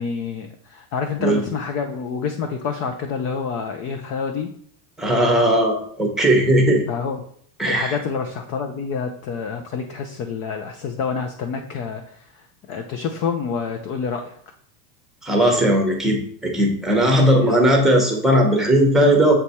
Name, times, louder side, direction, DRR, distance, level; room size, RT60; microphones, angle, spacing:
voice 1, 0.0-4.5 6.9-7.3 7.7-14.4 17.0-17.6, left 5 dB, 35° left, 4 dB, 0.4 m, -28 dB
voice 2, 5.0-6.8 7.6-7.9 15.2-19.3, right 1 dB, ahead, 1 dB, 0.9 m, -17 dB
7.2 x 3.3 x 4.2 m, 0.62 s
supercardioid pair, 150°, 49 cm